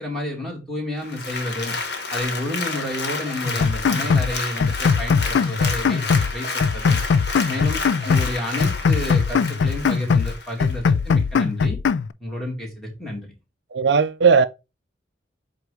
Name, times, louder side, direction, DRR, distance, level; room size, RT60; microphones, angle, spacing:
voice 1, 0.0-1.7 2.1-7.0 7.5-11.8 12.2-13.3, left 1 dB, ahead, 2.0 m, -30 dB
Applause, 1.0-10.8 11.2-11.3, left 3 dB, 60° left, 1.3 m, -30 dB
Keyboard (musical), 2.2-2.3 2.7-2.9 3.3-3.4 3.8-3.9 4.3-4.5 4.9-5.0 5.4-5.5 5.9-6.1 6.4-6.6 7.0-7.1 7.5-7.6 8.0-8.2, equal, 30° left, 1.6 m, -41 dB
sound 1, 3.4-4.3 4.6-6.3 6.6-8.3 8.6-10.3 10.6-12.1, left 5 dB, 75° left, 0.4 m, -20 dB
voice 2, 13.7-14.4, right 5 dB, 65° right, 0.5 m, -16 dB
7.8 x 2.6 x 4.7 m
head